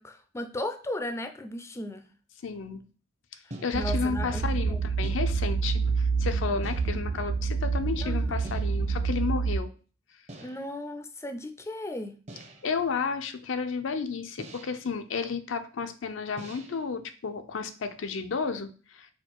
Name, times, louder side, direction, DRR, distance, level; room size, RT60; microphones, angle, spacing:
voice 1, 0.0-2.1 3.4-4.9 8.0-8.5 10.4-12.2, left 1 dB, 15° left, 7 dB, 0.4 m, -36 dB
voice 2, 2.4-2.8 3.6-9.7 12.6-19.1, left 5 dB, 85° left, 8 dB, 0.5 m, -32 dB
sound 1, 3.5-4.2 5.0-5.7 6.6-7.2 8.4-8.9 10.3-10.8 12.3-12.8 14.4-15.0 16.4-16.9, right 1 dB, 35° right, 0.7 m, -46 dB
sound 2, 3.7-9.6, right 5 dB, 75° right, 0.3 m, -28 dB
4.3 x 2.3 x 4.6 m, 0.38 s
head